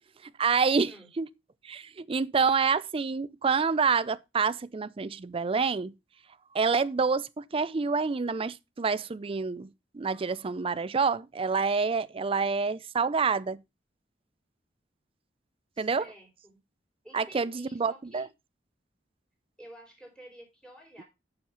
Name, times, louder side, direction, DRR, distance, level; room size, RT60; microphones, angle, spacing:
voice 1, 0.2-1.3 1.6-5.9 6.5-13.6 15.8-16.0 17.1-18.3, right 5 dB, 30° right, 0.4 m, -27 dB
voice 2, 15.7-16.6 17.0-18.3 19.6-21.0, right 1 dB, 5° left, 4.3 m, -51 dB
7.2 x 6.5 x 5.6 m
head